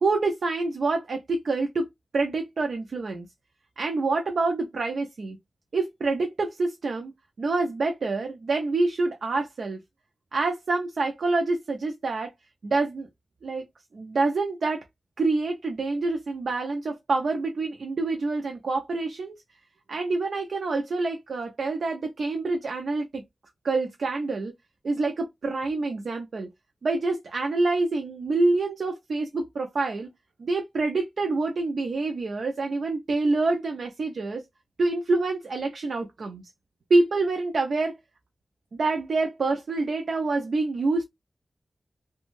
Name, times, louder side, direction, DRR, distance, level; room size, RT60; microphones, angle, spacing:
voice 1, 0.0-3.3 3.8-5.4 5.7-7.1 7.4-9.8 10.3-12.3 12.6-13.1 13.4-13.6 13.9-14.8 15.2-19.4 19.9-23.2 23.6-24.5 24.8-26.5 26.8-30.1 30.4-34.4 34.8-36.4 36.9-38.0 38.7-41.0, right 3 dB, 75° right, 0.4 m, -26 dB
2.5 x 2.2 x 2.9 m
wide cardioid pair, 95°, 0 cm